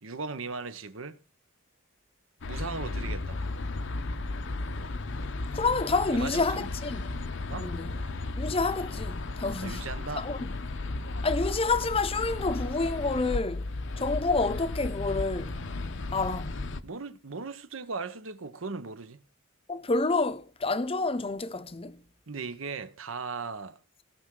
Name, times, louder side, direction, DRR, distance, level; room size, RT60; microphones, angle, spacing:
voice 1, 0.0-1.2 2.5-3.4 6.1-6.7 7.5-7.7 9.6-10.3 16.8-19.2 22.3-23.8, right 4 dB, 75° right, 0.9 m, -38 dB
sound 1, 2.4-16.8, left 2 dB, 60° left, 0.7 m, -34 dB
voice 2, 5.5-7.1 7.5-7.9 8.4-9.8 10.2-10.5 11.2-13.7 14.0-15.6 16.1-16.5 19.7-22.0, left 3 dB, 30° left, 0.7 m, -28 dB
17.5 x 6.0 x 3.8 m
head